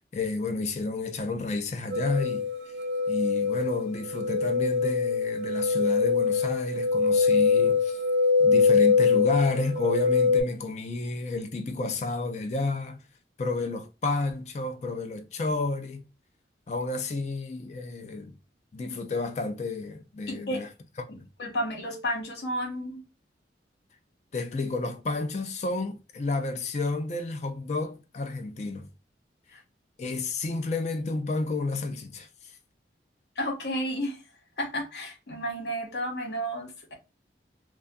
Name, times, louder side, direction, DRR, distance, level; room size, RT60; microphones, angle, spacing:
voice 1, 0.1-2.5 3.1-8.0 8.4-13.0 13.4-16.0 16.7-18.4 18.7-20.7 21.0-21.3 24.3-28.9 30.0-32.6, left 3 dB, 40° left, 0.4 m, -31 dB
sound 1, 1.9-10.4, left 5 dB, 75° right, 0.5 m, -23 dB
voice 2, 20.3-20.7 21.4-23.0 29.5-29.6 33.4-34.2 34.6-36.9, equal, 65° left, 0.7 m, -32 dB
2.3 x 2.3 x 2.5 m
head